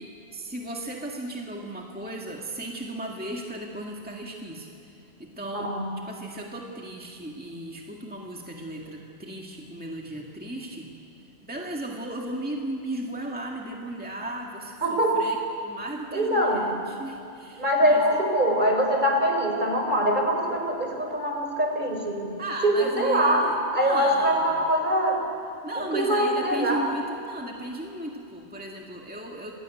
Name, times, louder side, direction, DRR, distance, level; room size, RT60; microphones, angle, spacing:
voice 1, 0.0-5.7 6.1-10.9 11.2-15.4 15.6-18.2 22.4-24.5 25.6-29.5, right 1 dB, 10° right, -1 dB, 1.9 m, -36 dB
voice 2, 5.5-5.9 14.8-15.3 16.1-16.6 17.6-22.2 22.6-23.5 23.7-25.2 25.8-26.9, equal, 45° right, 2 dB, 4.2 m, -23 dB
27.0 x 20.0 x 9.3 m, 2.6 s
omnidirectional pair, 1.1 m